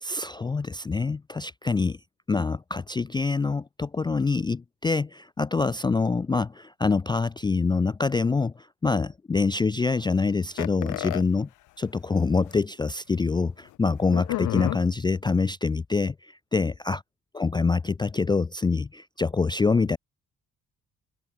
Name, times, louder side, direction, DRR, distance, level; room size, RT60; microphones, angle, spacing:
voice 1, 0.0-2.0 2.3-11.5 11.8-17.0 17.3-20.0, left 4 dB, 15° left, 0.3 m, -25 dB
sound 1, 10.6-11.2 12.2-12.3 12.5-12.6 14.1-14.8, left 18 dB, 80° left, 0.6 m, -29 dB
open air
cardioid pair, 90°, 30 cm